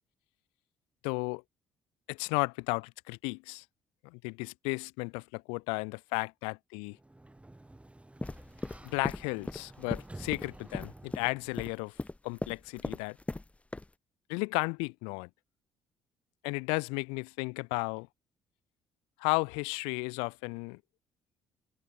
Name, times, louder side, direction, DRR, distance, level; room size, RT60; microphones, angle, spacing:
voice 1, 1.0-1.4 2.1-3.6 4.0-7.0 8.8-12.0 12.2-13.2 14.3-15.3 16.4-18.1 19.2-20.8, left 33 dB, 75° left, 2.1 m, -34 dB
Sliding door, 6.9-11.8, right 2 dB, 15° right, 5.9 m, -51 dB
sound 1, 8.2-13.5 13.7-13.9, left 2 dB, 15° left, 0.8 m, -37 dB
hypercardioid pair, 50°, 9 cm